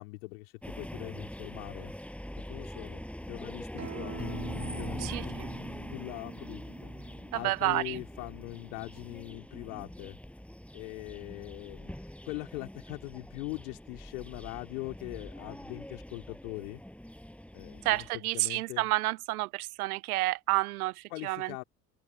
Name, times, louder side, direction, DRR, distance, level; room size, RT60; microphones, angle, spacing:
voice 1, 0.0-1.9 2.5-4.4 4.8-5.4 5.9-6.9 7.3-10.2 10.7-16.8 17.5-18.9 21.1-21.6, left 24 dB, 70° left, 3.0 m, -42 dB
sound 1, 0.6-18.1, equal, 5° left, 5.9 m, -43 dB
Acoustic guitar, 3.8-9.0, right 9 dB, 35° right, 1.8 m, -46 dB
Piano, 4.2-7.1, left 5 dB, 30° left, 6.7 m, -45 dB
voice 2, 5.0-5.5 7.3-8.0 17.8-21.6, right 20 dB, 75° right, 0.7 m, -30 dB
figure-of-eight pair, 55°, 45 cm